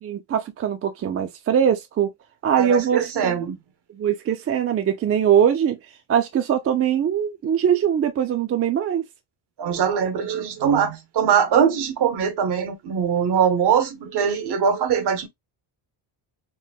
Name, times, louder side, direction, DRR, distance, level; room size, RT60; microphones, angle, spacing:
voice 1, 0.0-2.1 2.4-3.3 3.9-5.8 6.1-9.0, right 9 dB, 35° right, 0.4 m, -21 dB
voice 2, 2.5-3.6 9.6-15.3, right 7 dB, 60° right, 0.8 m, -22 dB
3.7 x 2.0 x 2.2 m
cardioid pair, 140°, 46 cm